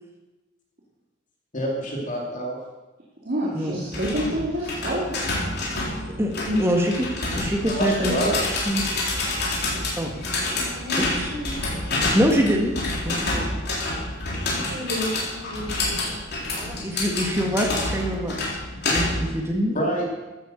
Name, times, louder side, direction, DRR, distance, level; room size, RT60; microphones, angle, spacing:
voice 1, 1.5-2.6 7.7-8.3 19.7-20.1, right 1 dB, 40° left, -1 dB, 2.7 m, -26 dB
voice 2, 3.2-5.2, equal, 50° right, -6 dB, 2.6 m, -27 dB
sound 1, 3.9-19.4, left 2 dB, 60° left, 3.7 m, -28 dB
voice 3, 6.2-7.1 7.4-8.3 8.7-8.8 9.6-9.7 10.0-10.1 11.0-11.3 12.1-12.8 13.0-13.5 16.5-18.4 18.9-19.8, equal, 15° right, 0 dB, 1.7 m, -24 dB
voice 4, 10.5-11.5 14.5-16.2, left 1 dB, 65° right, -10 dB, 5.4 m, -32 dB
14.5 x 8.9 x 6.8 m, 1.1 s
head